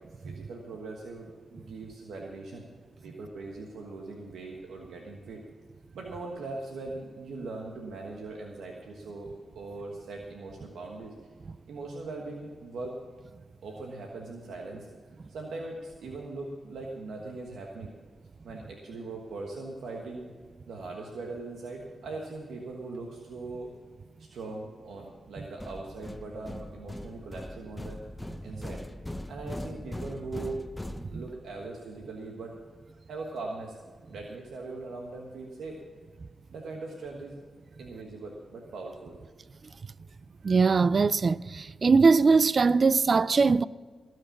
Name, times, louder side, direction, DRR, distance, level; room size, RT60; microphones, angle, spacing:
voice 1, 0.2-2.7 3.0-5.4 5.9-11.1 11.7-13.0 13.6-14.9 15.3-17.9 18.4-20.3 20.7-23.7 24.2-28.0 28.4-28.8 29.3-30.6 31.1-32.6 33.1-33.8 34.1-35.8 36.5-37.4 37.8-39.2, right 3 dB, 85° right, 1.4 m, -40 dB
sound 1, 25.6-31.6, left 1 dB, 15° left, 0.8 m, -41 dB
voice 2, 40.4-43.7, right 4 dB, 55° right, 0.4 m, -21 dB
17.5 x 6.6 x 7.2 m
supercardioid pair, 45°, 0 cm